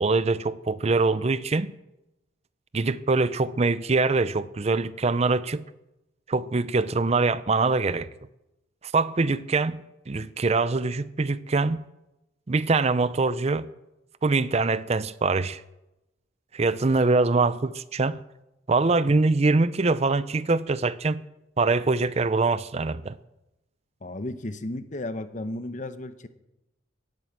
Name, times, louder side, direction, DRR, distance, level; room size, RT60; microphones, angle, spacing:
voice 1, 0.0-1.7 2.7-5.6 6.3-8.1 8.8-11.8 12.5-13.7 14.2-15.6 16.5-18.2 18.7-21.2 21.6-23.2, right 3 dB, 35° right, 0.5 m, -23 dB
voice 2, 24.0-26.3, left 1 dB, 40° left, 0.9 m, -34 dB
18.0 x 9.2 x 7.5 m
head